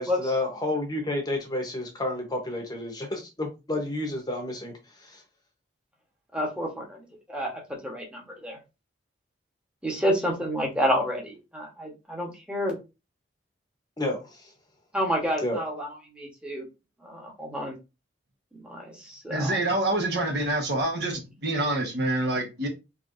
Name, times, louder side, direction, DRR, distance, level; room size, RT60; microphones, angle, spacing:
voice 1, 0.0-4.7 5.0-5.2 14.0-14.5 15.4-15.6, left 1 dB, 20° left, 0.9 m, -30 dB
voice 2, 6.3-8.6 9.8-12.8 14.9-16.6 17.0-17.8 18.6-19.6, equal, 5° right, 1.2 m, -29 dB
voice 3, 19.3-22.7, right 1 dB, 60° right, 1.3 m, -26 dB
4.6 x 3.1 x 2.6 m
head